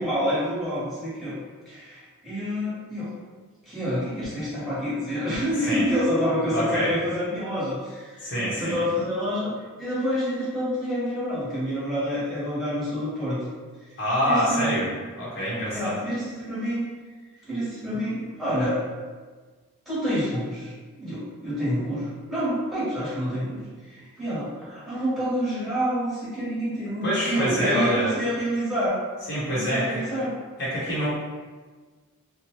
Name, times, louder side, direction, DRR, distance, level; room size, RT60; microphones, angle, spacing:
voice 1, 0.0-1.4 1.7-3.1 3.7-13.4 14.2-14.8 15.7-16.8 17.5-18.8 19.9-20.7 21.0-29.0 29.5-30.3, equal, ahead, -13 dB, 1.1 m, -28 dB
voice 2, 6.5-6.9 8.2-8.7 14.0-14.9 15.2-16.0 27.0-28.1 29.3-30.0 30.6-31.1, equal, 50° left, -9 dB, 0.9 m, -25 dB
2.7 x 2.3 x 3.0 m, 1.4 s
head